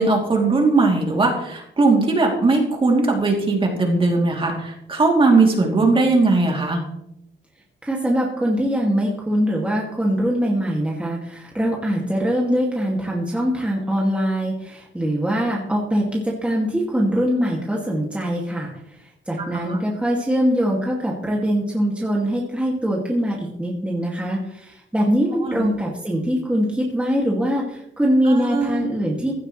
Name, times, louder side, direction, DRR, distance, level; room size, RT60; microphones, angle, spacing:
voice 1, 0.0-6.8 19.4-19.8 25.4-25.7 28.3-28.9, right 3 dB, 25° right, 0 dB, 2.9 m, -19 dB
voice 2, 7.8-18.7 19.3-29.3, equal, 5° right, -3 dB, 2.2 m, -22 dB
16.0 x 12.0 x 3.2 m, 0.77 s
wide cardioid pair, 150°, 20 cm